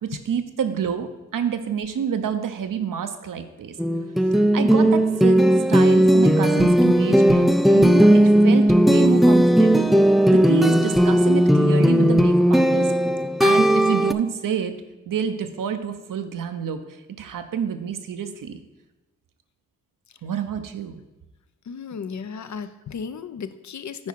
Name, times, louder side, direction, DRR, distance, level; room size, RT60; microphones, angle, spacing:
voice 1, 0.0-3.8 4.3-5.4 5.7-8.1 8.4-12.9 13.4-18.6 20.2-21.0, right 7 dB, 70° right, 8 dB, 0.8 m, -28 dB
sound 1, 3.8-14.1, equal, ahead, 0.4 m, -16 dB
voice 2, 21.7-24.1, left 6 dB, 60° left, 12 dB, 0.6 m, -34 dB
8.6 x 4.8 x 4.6 m, 1.1 s
cardioid pair, 45°, 33 cm